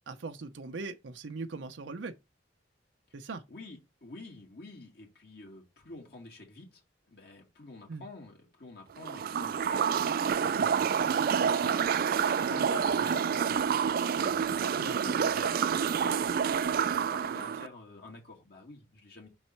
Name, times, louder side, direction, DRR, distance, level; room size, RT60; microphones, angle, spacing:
voice 1, 0.1-2.2 3.1-3.4 7.9-8.0 14.8-14.9, right 3 dB, 85° right, 0.6 m, -40 dB
voice 2, 3.5-6.8 7.1-12.0 12.2-13.8 14.1-19.3, left 3 dB, 60° left, 2.2 m, -48 dB
sound 1, 9.0-17.7, right 7 dB, 50° right, 0.3 m, -28 dB
5.4 x 4.0 x 4.4 m
head